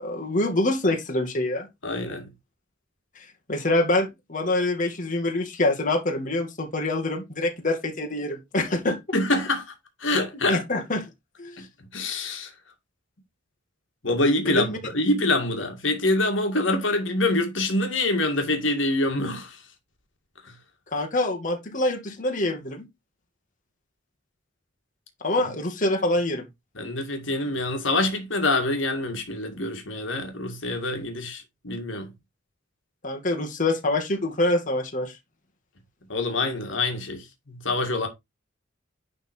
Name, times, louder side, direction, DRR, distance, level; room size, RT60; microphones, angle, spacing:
voice 1, 0.0-1.7 3.5-9.0 10.5-11.1 11.4-11.6 14.4-14.8 20.9-22.9 25.2-26.4 33.0-35.1, left 2 dB, 40° left, 2.3 m, -25 dB
voice 2, 1.8-2.3 9.1-9.7 10.0-10.6 11.6-11.7 11.9-12.5 14.0-19.6 20.4-20.5 26.8-32.1 36.1-38.1, left 2 dB, 70° left, 2.2 m, -25 dB
11.0 x 3.9 x 4.6 m
head